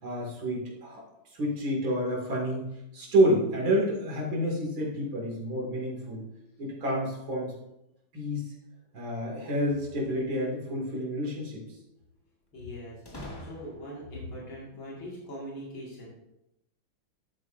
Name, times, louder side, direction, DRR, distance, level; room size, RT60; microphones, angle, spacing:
voice 1, 0.0-1.0 1.3-2.7 2.9-6.2 6.6-7.5 8.1-8.5 8.9-11.6, equal, 80° right, -2 dB, 3.1 m, -28 dB
sound 1, 9.6-10.6 13.1-14.1, left 1 dB, 15° left, 1.0 m, -45 dB
voice 2, 12.5-16.1, equal, 85° left, -5 dB, 2.9 m, -41 dB
12.0 x 7.8 x 2.6 m, 0.87 s
omnidirectional pair, 2.1 m